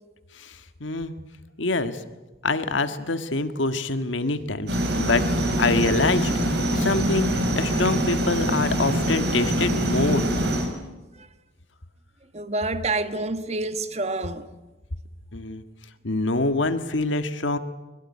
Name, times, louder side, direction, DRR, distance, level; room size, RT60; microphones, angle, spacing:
voice 1, 0.3-1.1 1.6-2.0 2.4-5.2 5.6-10.3 15.3-15.6 16.0-17.6, left 2 dB, 85° left, 1.7 m, -25 dB
sound 1, 4.7-10.7, equal, 60° right, 5.7 m, -24 dB
voice 2, 12.3-14.5, right 2 dB, 35° right, 1.3 m, -27 dB
22.5 x 22.0 x 9.7 m
head